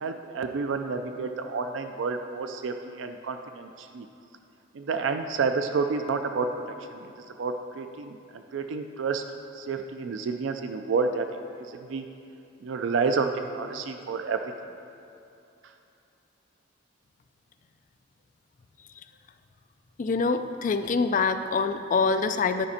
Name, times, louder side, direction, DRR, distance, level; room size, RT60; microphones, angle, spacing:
voice 1, 0.0-4.1 4.8-6.5 6.9-7.0 7.4-8.2 8.5-9.2 9.6-11.3 11.7-12.0 12.6-14.4, right 4 dB, 75° right, 6 dB, 0.4 m, -29 dB
voice 2, 20.0-22.7, left 4 dB, 40° left, 9 dB, 0.4 m, -25 dB
12.0 x 5.1 x 4.2 m, 2.7 s
head